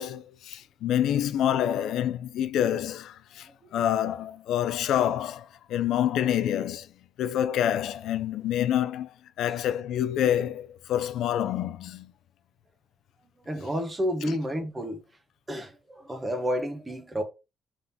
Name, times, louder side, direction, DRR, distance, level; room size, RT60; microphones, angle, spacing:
voice 1, 0.0-6.9 7.2-12.1 14.3-14.4, left 10 dB, 80° left, 0.3 m, -27 dB
voice 2, 13.4-15.0 15.5-17.2, equal, 20° right, 1.0 m, -30 dB
3.9 x 3.6 x 2.7 m
cardioid pair, 90°, 0 cm